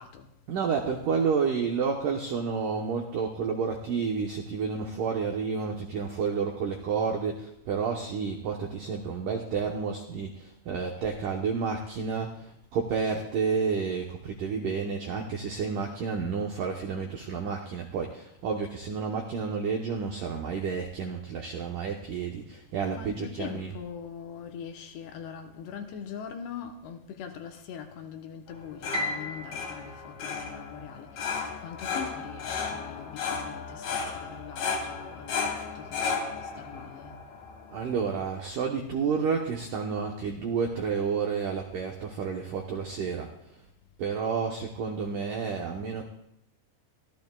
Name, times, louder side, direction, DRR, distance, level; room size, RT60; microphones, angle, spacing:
voice 1, 0.5-23.8 37.7-43.3 44.0-46.0, right 5 dB, 80° right, 1.9 m, -30 dB
voice 2, 22.8-37.2, left 7 dB, 75° left, 2.9 m, -42 dB
sound 1, 28.5-38.2, left 5 dB, 60° left, 2.0 m, -35 dB
Piano, 28.9-31.2, left 1 dB, 35° right, 2.5 m, -36 dB
25.0 x 14.5 x 2.3 m
omnidirectional pair, 5.3 m